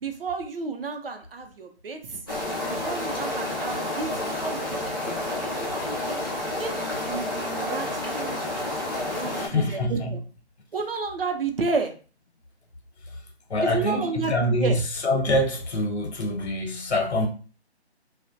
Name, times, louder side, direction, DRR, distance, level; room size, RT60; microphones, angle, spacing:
voice 1, 0.0-2.2 2.7-6.2 6.6-8.4 9.1-10.2 10.7-11.9 13.6-14.8, right 4 dB, 55° right, 0.5 m, -32 dB
sound 1, 2.3-9.5, left 1 dB, 20° left, 0.5 m, -30 dB
voice 2, 9.2-10.2 13.5-14.7 15.0-17.3, left 1 dB, 75° left, 0.8 m, -25 dB
2.4 x 2.1 x 2.5 m
figure-of-eight pair, 160°, 33 cm